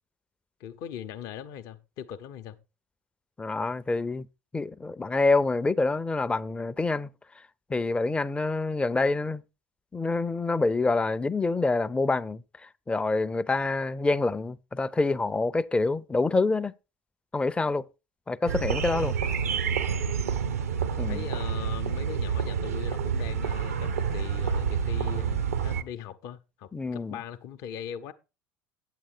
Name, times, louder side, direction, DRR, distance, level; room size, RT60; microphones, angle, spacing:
voice 1, 0.6-2.6 20.9-28.1, left 9 dB, 50° left, 0.7 m, -40 dB
voice 2, 3.4-4.3 4.5-7.1 7.7-9.4 9.9-12.4 12.9-16.7 17.3-17.8 18.3-19.1 21.0-21.2 26.7-27.2, left 3 dB, 15° left, 0.5 m, -26 dB
sound 1, 18.5-25.8, right 6 dB, 75° right, 0.6 m, -28 dB
8.8 x 7.5 x 4.3 m
figure-of-eight pair, 65°, 8 cm